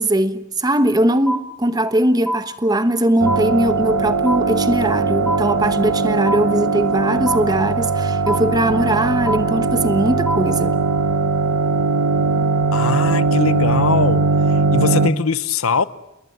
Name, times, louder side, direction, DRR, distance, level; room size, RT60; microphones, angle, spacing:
voice 1, 0.0-10.7, right 1 dB, 20° right, 1.3 m, -20 dB
sound 1, 1.3-2.0 2.3-3.0 3.3-4.0 4.3-5.0 5.3-6.0 6.3-7.0 7.3-8.0 8.3-9.0 9.3-10.0 10.3-11.0, equal, ahead, 2.3 m, -27 dB
sound 2, 3.2-15.1, right 4 dB, 85° right, 1.3 m, -19 dB
voice 2, 12.7-14.3 14.7-15.8, left 5 dB, 90° left, 1.0 m, -21 dB
28.5 x 20.5 x 9.2 m
head